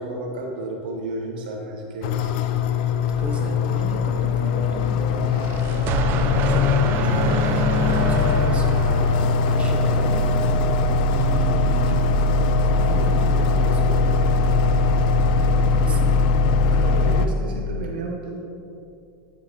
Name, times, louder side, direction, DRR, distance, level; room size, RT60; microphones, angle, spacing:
voice 1, 0.0-2.3 5.6-5.8 16.7-18.4, right 2 dB, 80° right, 1 dB, 1.2 m, -32 dB
sound 1, 2.0-17.3, left 4 dB, 70° left, 0.5 m, -20 dB
voice 2, 3.2-9.1 9.5-10.3 11.1-12.2 12.7-14.1 15.8-16.1, right 3 dB, 25° right, 1 dB, 1.2 m, -34 dB
sound 2, 5.2-9.8, right 10 dB, 45° right, 0.4 m, -27 dB
13.0 x 5.1 x 2.9 m, 2.5 s
hypercardioid pair, 105°, 5 cm